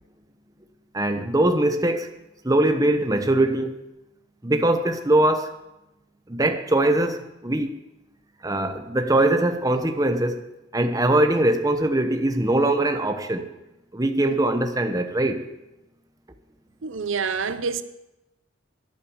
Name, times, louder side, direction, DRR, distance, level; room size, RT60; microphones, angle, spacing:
voice 1, 0.9-2.1 2.4-3.8 4.4-5.5 6.3-7.7 8.4-10.4 10.7-13.5 13.9-15.4, right 1 dB, 20° right, 0.9 m, -22 dB
voice 2, 16.8-17.8, right 5 dB, 75° right, 0.7 m, -27 dB
12.0 x 10.5 x 7.0 m
head